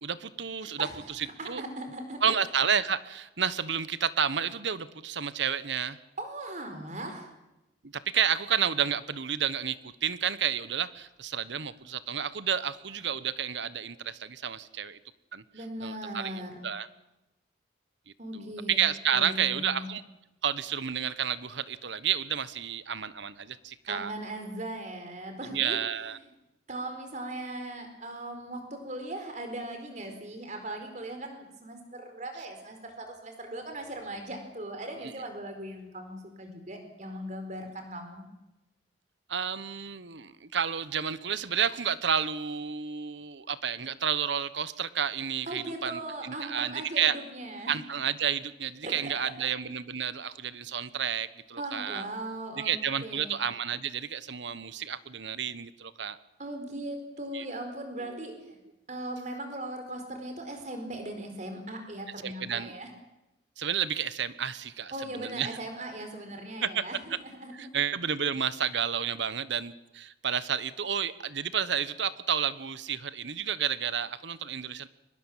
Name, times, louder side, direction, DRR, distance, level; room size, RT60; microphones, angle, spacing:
voice 1, 0.0-1.6 2.2-6.0 7.8-15.0 15.3-15.4 15.8-16.9 18.3-20.0 20.4-24.1 25.4-26.2 35.0-35.1 39.3-47.2 47.7-52.1 52.6-56.2 57.3-57.5 58.0-58.4 62.2-62.7 63.6-65.6 66.6-66.8 67.5-74.9, right 8 dB, 70° right, 15 dB, 1.1 m, -31 dB
voice 2, 1.2-2.4 6.2-7.3 15.5-16.7 18.2-18.8 19.1-19.9 23.9-25.8 26.7-38.2 45.5-47.8 48.8-49.3 51.6-52.7 53.0-53.3 56.4-58.6 58.9-62.9 64.9-67.7, right 1 dB, 40° right, 5 dB, 4.4 m, -39 dB
23.5 x 20.5 x 7.4 m, 0.95 s
head